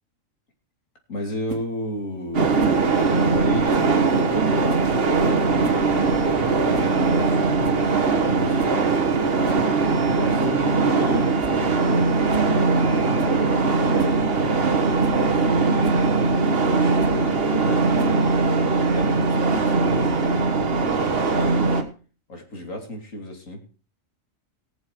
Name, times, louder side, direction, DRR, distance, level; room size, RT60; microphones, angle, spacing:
voice 1, 1.1-2.4 3.2-7.7 8.1-9.0 9.4-9.5 10.2-14.7 15.1-16.1 16.6-18.2 18.8-21.7 22.3-23.6, left 1 dB, 75° left, 2 dB, 3.1 m, -33 dB
sound 1, 1.5-1.7 2.6-2.8 3.7-3.9 4.7-4.9 5.4-5.9 6.1-6.2 6.7-7.0 7.3-7.4 7.6-7.9 8.6-8.8 9.4-9.7 10.4-10.6 11.0-11.1 11.4-11.6 11.9-12.0 12.3-12.5 13.2-13.4 14.0-14.2 14.7-14.8 15.0-15.2 15.8-16.0 17.0-17.2 18.0-18.3, right 2 dB, 75° right, 1.9 m, -36 dB
sound 2, 2.3-21.8, right 4 dB, 45° right, 1.5 m, -20 dB
18.5 x 7.1 x 4.6 m, 0.37 s
omnidirectional pair, 1.4 m